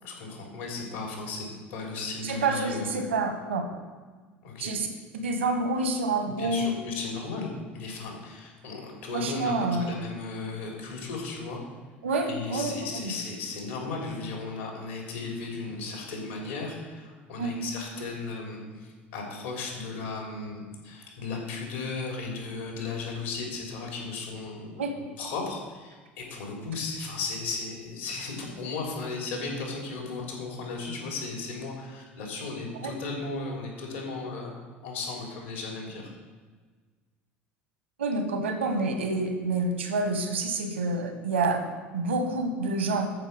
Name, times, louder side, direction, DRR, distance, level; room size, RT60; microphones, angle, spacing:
voice 1, 0.0-3.0 4.4-4.7 6.4-11.6 12.2-36.1, left 3 dB, 70° left, 0 dB, 3.4 m, -36 dB
voice 2, 2.2-3.7 4.6-4.9 5.1-6.7 9.1-10.0 12.0-13.1 17.4-17.5 24.8-25.0 32.8-32.9 38.0-41.6 41.9-43.1, right 3 dB, 80° right, 6 dB, 1.5 m, -28 dB
13.5 x 5.7 x 5.2 m, 1.4 s
figure-of-eight pair, 70°, 6 cm